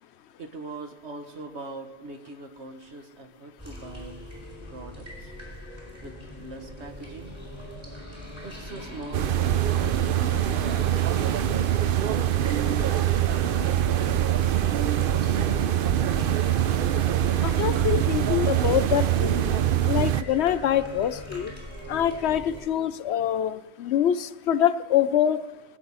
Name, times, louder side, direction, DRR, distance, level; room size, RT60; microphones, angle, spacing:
voice 1, 0.4-4.2 4.7-5.3 6.0-7.4 8.4-11.3, right 2 dB, 75° right, 5 dB, 1.7 m, -42 dB
sound 1, 3.6-22.6, equal, 25° right, 4.5 m, -41 dB
sound 2, 9.1-20.2, right 11 dB, 60° right, 0.7 m, -24 dB
voice 2, 17.4-19.4 19.8-21.5 21.9-25.4, left 10 dB, 75° left, 13 dB, 0.9 m, -25 dB
20.0 x 8.5 x 5.5 m, 1.1 s
omnidirectional pair, 1.1 m